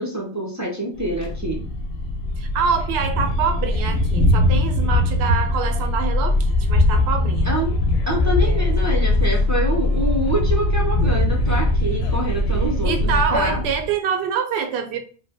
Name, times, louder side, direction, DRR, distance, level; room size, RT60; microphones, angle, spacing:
voice 1, 0.0-1.7 7.4-7.8 8.1-13.6, right 1 dB, 25° right, 0.4 m, -26 dB
sound 1, 0.9-13.3, left 1 dB, 70° left, 0.7 m, -25 dB
Thunder, 1.3-13.9, left 2 dB, 20° left, 0.9 m, -22 dB
voice 2, 2.4-6.4 6.7-7.5 12.8-15.0, right 6 dB, 70° right, 0.8 m, -25 dB
3.2 x 2.0 x 3.5 m
omnidirectional pair, 1.2 m